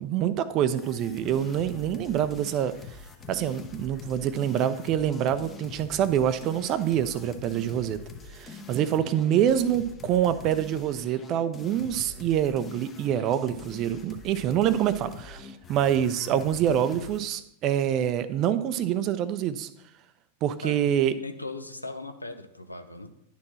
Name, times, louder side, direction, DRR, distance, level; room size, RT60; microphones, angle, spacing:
voice 1, 0.0-2.7 3.3-8.0 8.3-19.7 20.4-21.1, right 10 dB, 35° right, 13 dB, 0.5 m, -26 dB
sound 1, 0.8-17.3, left 5 dB, 20° left, 0.9 m, -44 dB
voice 2, 21.1-23.1, left 2 dB, 85° left, 8 dB, 0.6 m, -38 dB
10.5 x 4.4 x 4.3 m, 0.78 s
figure-of-eight pair, 90°, 0 cm